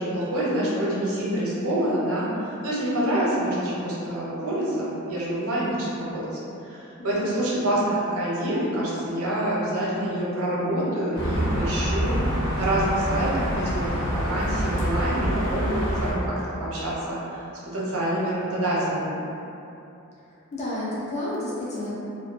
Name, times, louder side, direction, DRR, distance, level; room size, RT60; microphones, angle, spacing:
voice 1, 0.0-2.3 2.6-16.2 16.6-17.4 17.7-19.1, right 1 dB, 85° right, -7 dB, 0.7 m, -26 dB
voice 2, 7.0-7.3 20.5-21.9, left 1 dB, 30° left, -7 dB, 0.4 m, -31 dB
sound 1, 11.1-16.1, equal, 60° left, 0.7 m, -26 dB
2.5 x 2.1 x 2.4 m, 2.8 s
head